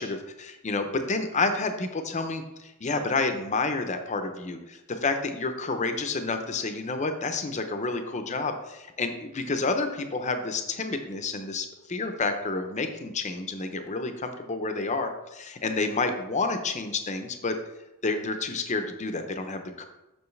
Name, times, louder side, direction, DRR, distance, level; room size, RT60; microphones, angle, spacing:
voice 1, 0.0-17.5 18.0-19.8, left 3 dB, 35° left, 7 dB, 0.6 m, -29 dB
7.0 x 6.2 x 3.2 m, 0.97 s
head